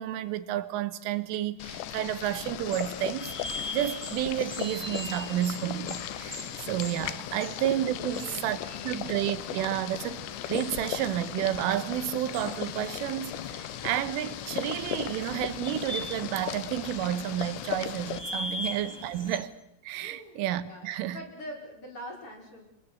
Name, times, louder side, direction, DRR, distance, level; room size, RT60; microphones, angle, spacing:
voice 1, 0.0-3.3 3.7-8.6 8.9-19.5 19.8-21.2, right 12 dB, 75° right, 3.6 m, -31 dB
Boiling, 1.6-18.2, left 12 dB, 70° left, 3.0 m, -37 dB
sound 1, 2.6-19.4, left 1 dB, 10° left, 1.3 m, -42 dB
sound 2, 5.1-11.7 12.0-12.2, left 2 dB, 45° left, 7.0 m, -60 dB
voice 2, 7.2-7.5 8.0-8.9 18.3-18.6 20.0-22.7, equal, 25° left, 5.9 m, -45 dB
28.5 x 22.5 x 8.0 m
omnidirectional pair, 5.9 m